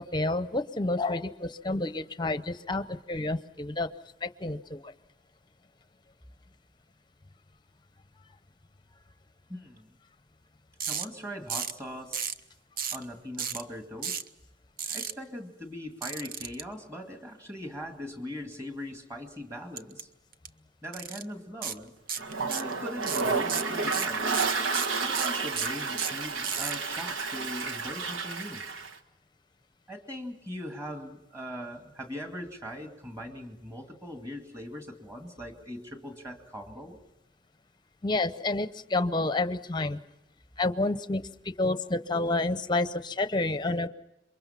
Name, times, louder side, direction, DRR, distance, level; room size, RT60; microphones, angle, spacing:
voice 1, 0.0-3.9 4.2-4.9 38.0-40.0 40.6-43.9, left 2 dB, 20° left, 11 dB, 0.7 m, -29 dB
voice 2, 9.5-10.0 10.9-12.2 12.9-14.2 14.9-20.1 20.8-21.9 22.5-24.3 25.0-28.6 29.9-37.0, equal, 15° right, 4 dB, 2.3 m, -40 dB
sound 1, 10.8-11.1 11.5-11.8 12.1-12.4 12.8-13.0 13.4-13.6 14.0-14.3 14.8-15.1 16.0-16.6 19.8-20.0 20.3-20.5 20.9-21.2 21.6-21.8 22.1-22.7 23.0-26.8, right 7 dB, 45° right, 0.8 m, -33 dB
Toilet flush, 22.2-28.9, right 4 dB, 80° right, 1.4 m, -31 dB
27.5 x 23.5 x 5.9 m, 0.92 s
head